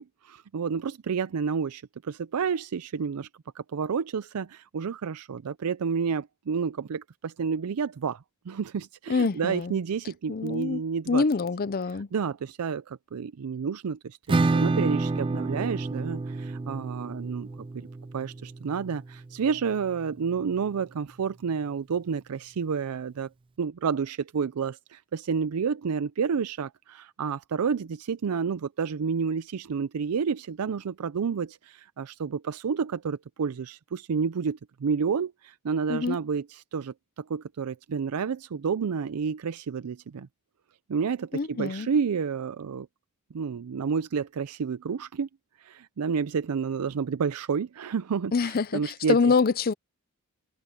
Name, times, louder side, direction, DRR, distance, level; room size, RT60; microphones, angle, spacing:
voice 1, 0.0-3.3 3.5-11.2 11.9-17.5 17.7-17.9 18.1-23.3 23.6-40.3 40.9-42.9 43.3-45.3 45.6-49.3, right 6 dB, 90° right, 0.5 m, -30 dB
voice 2, 9.1-9.8 10.3-10.8 11.1-12.1 35.9-36.2 41.3-41.9 48.3-49.7, left 4 dB, 40° left, 0.5 m, -25 dB
Acoustic guitar / Strum, 14.3-19.7, right 3 dB, 25° right, 0.3 m, -29 dB
head